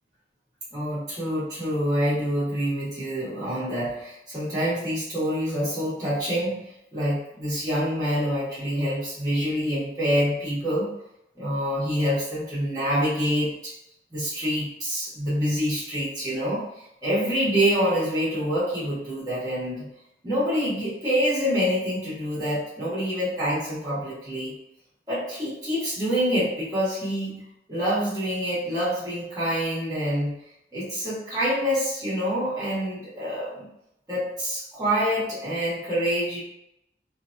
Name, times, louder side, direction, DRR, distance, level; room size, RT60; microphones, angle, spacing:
voice 1, 0.7-10.9 11.3-13.7 14.1-19.9 20.2-24.5 25.1-30.4 30.7-33.7 34.1-36.4, equal, 20° right, -10 dB, 1.4 m, -26 dB
3.2 x 2.5 x 2.5 m, 0.83 s
head